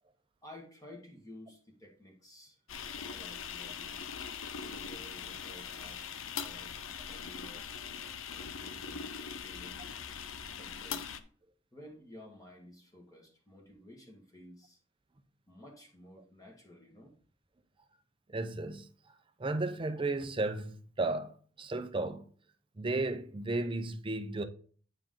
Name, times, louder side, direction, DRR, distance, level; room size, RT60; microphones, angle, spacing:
voice 1, 0.4-2.6 2.9-4.0 4.6-7.6 8.3-9.8 10.4-11.1 11.7-14.8 15.5-17.1, left 1 dB, 20° left, 1.7 m, -53 dB
sound 1, 2.7-11.2, left 7 dB, 90° left, 0.6 m, -41 dB
voice 2, 18.3-18.9 19.4-22.2 22.8-24.4, right 2 dB, 25° right, 0.6 m, -34 dB
8.9 x 4.8 x 3.7 m
head